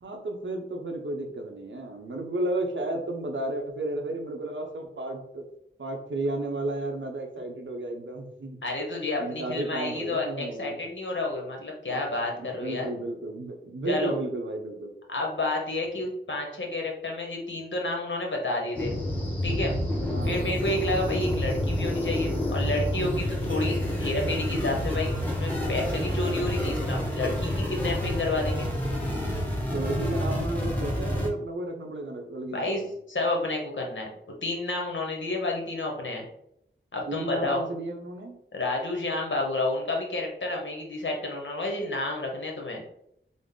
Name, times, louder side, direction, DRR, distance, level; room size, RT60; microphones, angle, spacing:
voice 1, 0.0-5.5 5.8-8.6 9.2-10.7 12.4-14.9 20.1-20.6 29.7-33.0 37.1-38.4, right 2 dB, 65° right, 2 dB, 0.7 m, -33 dB
voice 2, 8.6-12.9 13.8-14.1 15.1-18.9 19.4-19.8 20.2-28.7 32.5-32.8 33.1-34.1 34.4-36.3 36.9-37.6 38.5-42.8, left 2 dB, 65° left, 0 dB, 1.0 m, -30 dB
sound 1, 18.7-31.3, left 1 dB, 10° left, 1.2 m, -28 dB
3.8 x 2.0 x 3.6 m, 0.75 s
cardioid pair, 45°, 21 cm